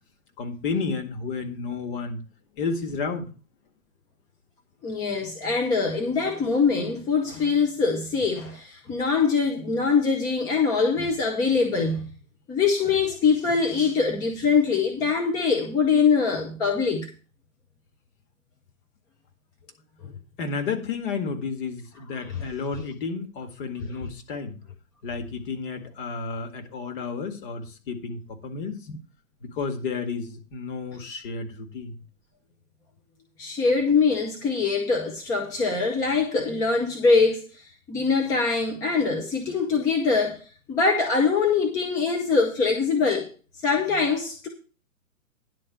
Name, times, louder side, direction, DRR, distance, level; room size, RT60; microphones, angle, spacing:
voice 1, 0.4-2.2 2.6-3.3 20.4-24.6 25.0-28.8 29.4-32.0, left 4 dB, 40° left, 1.9 m, -31 dB
voice 2, 4.8-12.1 12.5-17.1 20.0-20.1 22.3-22.4 33.4-37.6 37.9-40.4 40.7-43.3 43.6-44.5, left 4 dB, 10° left, 0.6 m, -23 dB
10.5 x 4.3 x 7.6 m
figure-of-eight pair, 125°, 42 cm